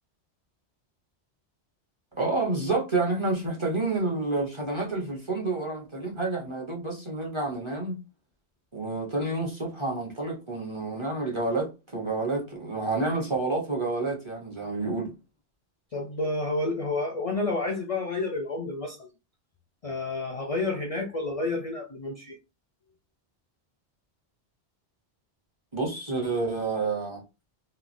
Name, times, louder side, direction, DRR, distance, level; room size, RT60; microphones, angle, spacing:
voice 1, 2.2-8.0 8.7-15.1 25.7-27.2, right 3 dB, 30° right, 0.7 m, -29 dB
voice 2, 15.9-19.1 19.8-22.4, left 2 dB, 50° left, 0.4 m, -30 dB
3.0 x 2.3 x 2.5 m
omnidirectional pair, 1.1 m